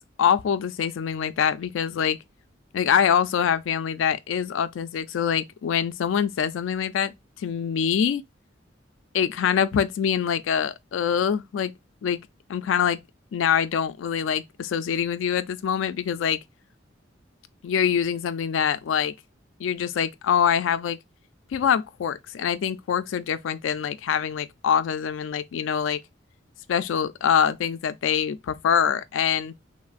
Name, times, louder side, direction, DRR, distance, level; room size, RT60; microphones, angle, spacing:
voice 1, 0.2-2.2 2.7-8.2 9.1-11.7 12.0-12.2 12.5-13.0 13.3-16.4 17.6-19.1 19.6-21.0 21.5-26.0 26.7-29.5, left 8 dB, 80° left, 0.3 m, -24 dB
3.1 x 2.0 x 2.4 m
head